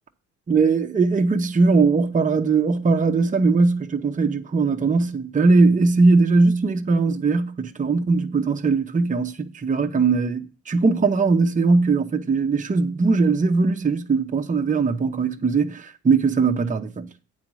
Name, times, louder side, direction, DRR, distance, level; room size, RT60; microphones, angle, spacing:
voice 1, 0.5-17.1, right 4 dB, 25° right, 0.8 m, -20 dB
8.7 x 4.1 x 6.2 m
cardioid pair, 90°, 30 cm